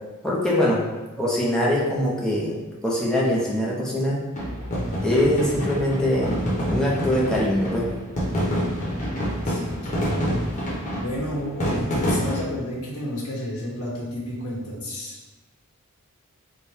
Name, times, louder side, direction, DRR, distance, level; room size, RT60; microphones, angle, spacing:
voice 1, 0.2-0.8 1.2-2.6 2.8-4.2 5.0-6.4 6.7-7.9, left 1 dB, 5° left, -6 dB, 0.6 m, -22 dB
sound 1, 4.3-12.4, equal, 35° left, 1.0 m, -27 dB
voice 2, 9.4-10.3 11.0-15.2, equal, 90° left, -6 dB, 1.3 m, -31 dB
4.4 x 2.2 x 3.4 m, 1.1 s
head